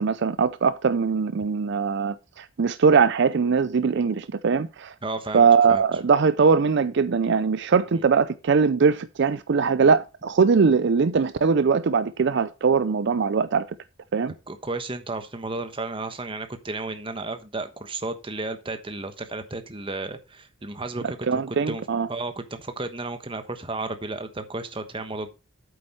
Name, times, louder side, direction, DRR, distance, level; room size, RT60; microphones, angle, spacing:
voice 1, 0.0-4.9 5.3-13.7 14.1-14.3 21.3-22.1, right 5 dB, 60° right, 0.5 m, -21 dB
voice 2, 5.0-5.8 14.5-21.8 22.1-25.3, right 2 dB, 25° right, 1.2 m, -33 dB
8.6 x 7.7 x 4.3 m
head